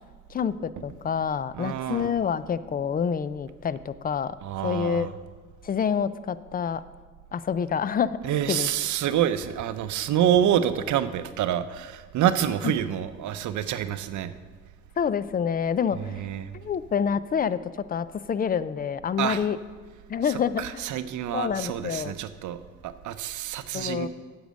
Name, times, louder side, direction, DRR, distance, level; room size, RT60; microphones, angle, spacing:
voice 1, 0.3-4.4 4.6-5.1 5.6-6.8 7.3-8.2 8.5-8.7 12.6-12.7 15.0-16.2 16.5-19.6 20.1-20.8 21.3-22.2 23.7-24.1, left 7 dB, 30° left, 16 dB, 0.4 m, -27 dB
voice 2, 1.6-2.1 4.4-5.1 8.2-14.3 16.1-16.5 19.2-19.4 20.6-22.6 22.8-24.1, right 10 dB, 75° right, 12 dB, 0.7 m, -27 dB
8.3 x 8.0 x 6.3 m, 1.4 s
cardioid pair, 90°, 30 cm